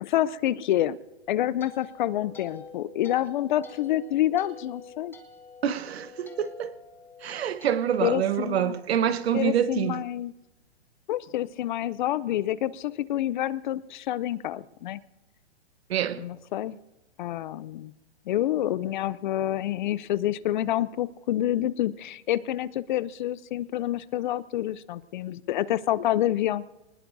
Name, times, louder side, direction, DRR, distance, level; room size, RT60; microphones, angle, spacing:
voice 1, 0.0-1.0 1.3-5.1 8.0-8.8 9.3-10.3 11.1-15.0 16.2-16.8 17.2-17.9 18.3-26.6, left 13 dB, 45° left, 0.5 m, -28 dB
sound 1, 1.1-9.4, left 5 dB, 5° left, 1.0 m, -48 dB
voice 2, 5.6-6.7 7.2-10.0 15.9-16.2, right 9 dB, 70° right, 1.1 m, -26 dB
25.0 x 20.0 x 2.6 m
hypercardioid pair, 135°, 33 cm